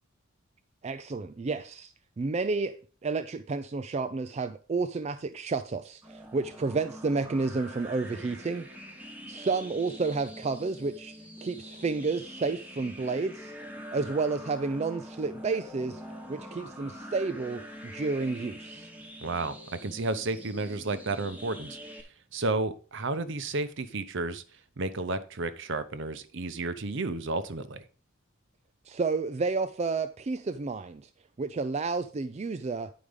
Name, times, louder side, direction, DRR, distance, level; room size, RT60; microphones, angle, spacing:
voice 1, 0.8-2.8 3.0-8.7 9.3-11.1 11.4-13.5 13.9-16.0 16.3-18.9 28.9-31.1 31.4-32.9, right 4 dB, 30° right, 0.4 m, -31 dB
sound 1, 6.0-22.0, equal, 10° right, 1.1 m, -45 dB
voice 2, 19.2-22.0 22.3-24.4 24.8-27.8, right 3 dB, 60° right, 0.8 m, -32 dB
9.6 x 5.0 x 5.1 m
head